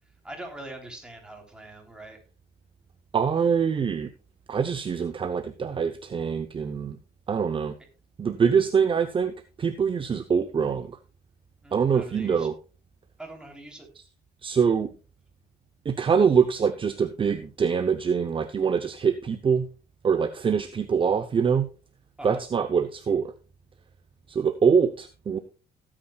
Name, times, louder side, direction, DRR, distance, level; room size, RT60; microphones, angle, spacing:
voice 1, 0.2-2.2 11.6-12.5 13.2-13.9 22.2-22.4, right 1 dB, 5° right, 1 dB, 3.3 m, -42 dB
voice 2, 3.1-4.1 4.5-7.0 7.3-7.7 8.2-11.0 11.7-12.5 14.4-14.9 15.8-19.7 20.0-21.7 22.2-23.3 24.3-25.4, right 6 dB, 30° right, 9 dB, 0.7 m, -24 dB
17.5 x 8.8 x 2.3 m, 0.33 s
cardioid pair, 110°, 17 cm